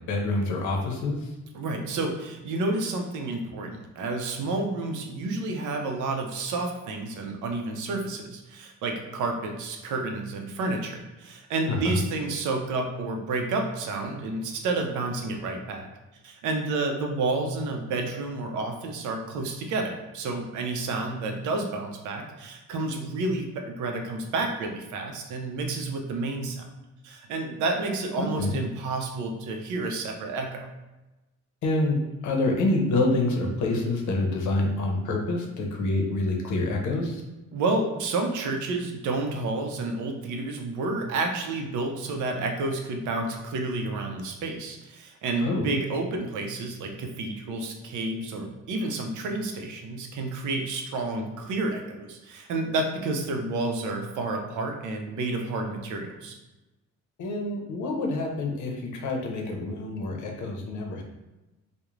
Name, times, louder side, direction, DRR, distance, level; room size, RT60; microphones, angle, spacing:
voice 1, 0.1-1.3 11.7-12.0 28.2-28.5 31.6-32.0 32.2-37.2 45.4-45.6 57.2-61.0, left 2 dB, 75° left, 1 dB, 0.6 m, -27 dB
voice 2, 1.5-15.9 16.2-26.7 27.0-30.7 37.5-56.3, right 2 dB, 80° right, 3 dB, 0.5 m, -30 dB
2.4 x 2.1 x 3.0 m, 1.0 s
cardioid pair, 90°, 30 cm